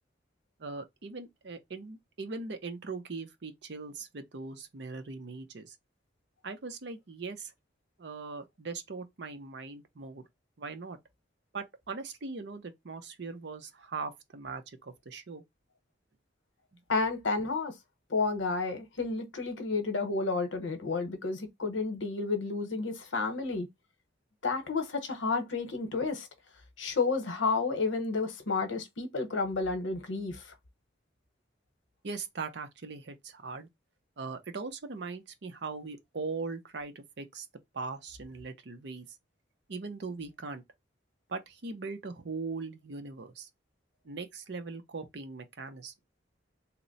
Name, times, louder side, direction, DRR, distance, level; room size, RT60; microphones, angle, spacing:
voice 1, 0.6-5.7 6.4-7.5 8.0-10.3 10.6-11.0 11.5-15.4 32.0-33.7 34.2-37.5 37.7-39.1 39.7-40.6 41.3-43.5 44.0-45.9, right 4 dB, 65° right, 0.6 m, -40 dB
voice 2, 16.9-17.7 18.1-23.7 24.4-26.3 26.8-30.5, left 4 dB, 85° left, 0.8 m, -31 dB
2.9 x 2.1 x 3.9 m
head